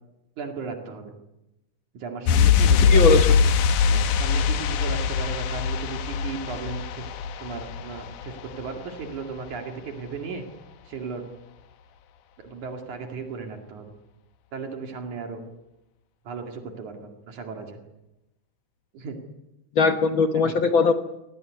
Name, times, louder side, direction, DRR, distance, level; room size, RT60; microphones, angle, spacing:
voice 1, 0.4-1.1 1.9-3.1 3.9-10.4 10.9-11.2 12.4-13.9 14.5-15.4 16.3-17.8 18.9-19.2 20.3-20.5, right 5 dB, 70° right, 3 dB, 3.6 m, -36 dB
sound 1, 2.3-8.8 9.0-9.2, left 6 dB, 80° left, 2.6 m, -22 dB
voice 2, 2.9-3.5 19.7-20.9, left 4 dB, 55° left, 7 dB, 1.4 m, -20 dB
25.5 x 18.5 x 9.9 m, 0.96 s
omnidirectional pair, 3.5 m